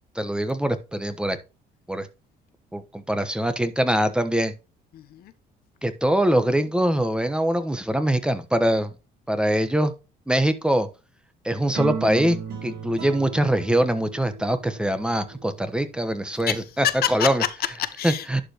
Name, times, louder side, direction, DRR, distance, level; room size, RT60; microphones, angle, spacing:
voice 1, 0.1-1.4 1.9-2.1 2.7-4.5 5.8-8.9 9.3-9.9 10.3-10.9 11.4-17.4 18.0-18.4, right 1 dB, 5° right, 1.1 m, -23 dB
voice 2, 4.9-5.3 16.3-18.4, left 12 dB, 65° left, 0.9 m, -28 dB
sound 1, 11.7-16.2, right 6 dB, 70° right, 4.0 m, -36 dB
11.0 x 5.2 x 3.0 m
cardioid pair, 110°, 17 cm